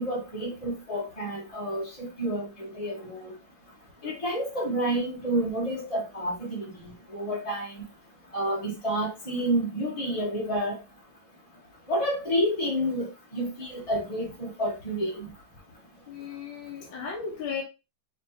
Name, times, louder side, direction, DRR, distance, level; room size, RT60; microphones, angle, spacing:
voice 1, 0.0-3.3 4.0-7.7 8.3-10.8 11.9-15.3, right 1 dB, 25° left, 0.9 m, -29 dB
voice 2, 16.1-17.6, left 6 dB, 80° left, 1.7 m, -35 dB
5.2 x 3.2 x 2.8 m
omnidirectional pair, 2.1 m